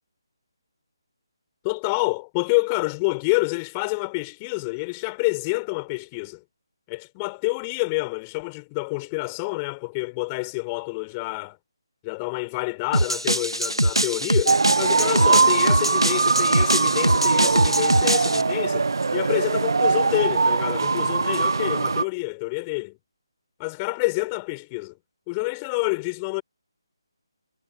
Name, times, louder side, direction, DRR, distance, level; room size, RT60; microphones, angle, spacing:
voice 1, 1.6-6.4 6.9-11.6 12.0-23.0 23.6-24.9 25.3-26.4, left 28 dB, 20° left, 4.1 m, -28 dB
sound 1, 12.9-18.4, right 1 dB, 85° right, 1.8 m, -23 dB
sound 2, 14.5-22.0, right 4 dB, 55° right, 1.3 m, -21 dB
figure-of-eight pair, 150°, 3 cm